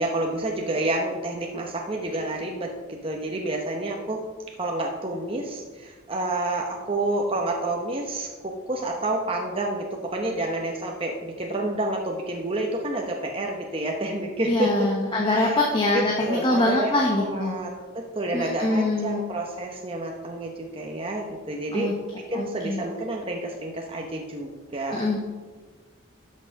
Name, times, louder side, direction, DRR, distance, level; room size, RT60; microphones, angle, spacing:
voice 1, 0.0-4.2 4.6-14.9 15.2-15.6 15.9-16.9 17.2-21.9 22.3-25.0, right 1 dB, 25° right, 1 dB, 0.9 m, -29 dB
voice 2, 14.5-17.6 18.3-19.2 21.7-21.9 22.3-22.8 24.9-25.2, left 2 dB, 25° left, -1 dB, 1.2 m, -24 dB
12.5 x 5.7 x 5.3 m, 1.4 s
head